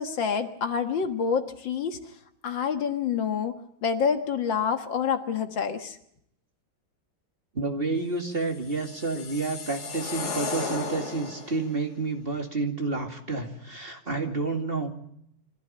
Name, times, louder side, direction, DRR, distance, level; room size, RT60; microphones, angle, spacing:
voice 1, 0.0-2.0 2.4-6.0, left 6 dB, 70° left, 7 dB, 2.2 m, -27 dB
voice 2, 7.5-15.0, right 3 dB, 30° right, 4 dB, 2.5 m, -30 dB
sound 1, 8.5-11.7, left 4 dB, 50° left, 2.9 m, -34 dB
25.0 x 15.0 x 8.7 m, 0.72 s
omnidirectional pair, 2.2 m